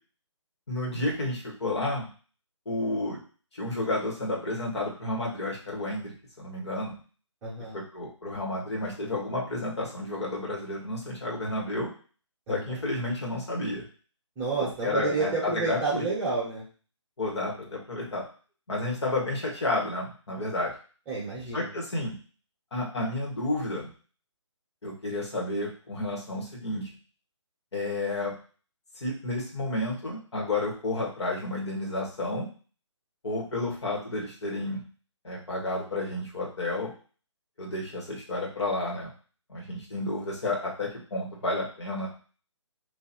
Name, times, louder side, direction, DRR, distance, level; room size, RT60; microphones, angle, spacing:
voice 1, 0.7-2.1 2.7-3.2 3.5-7.0 7.7-11.9 12.5-13.8 14.8-16.0 17.2-18.2 18.7-20.7 21.5-22.1 22.7-23.9 24.8-26.9 27.7-28.3 29.0-32.5 33.2-34.8 35.2-36.9 37.6-39.1 39.5-42.1, left 2 dB, 60° left, -2 dB, 1.6 m, -31 dB
voice 2, 7.4-7.8 12.5-12.8 14.4-16.6 21.1-21.7, right 4 dB, 15° right, -6 dB, 1.1 m, -30 dB
2.9 x 2.8 x 4.4 m, 0.40 s
figure-of-eight pair, 150°, 16 cm